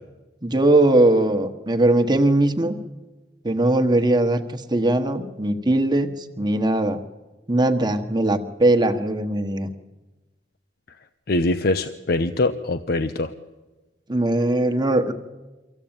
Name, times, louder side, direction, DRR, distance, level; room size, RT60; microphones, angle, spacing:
voice 1, 0.4-2.7 3.4-7.0 7.5-9.7 14.1-15.1, right 1 dB, 25° right, 7 dB, 1.3 m, -20 dB
voice 2, 11.3-13.3, left 2 dB, 60° left, 9 dB, 0.8 m, -23 dB
24.5 x 15.0 x 9.0 m, 1.2 s
head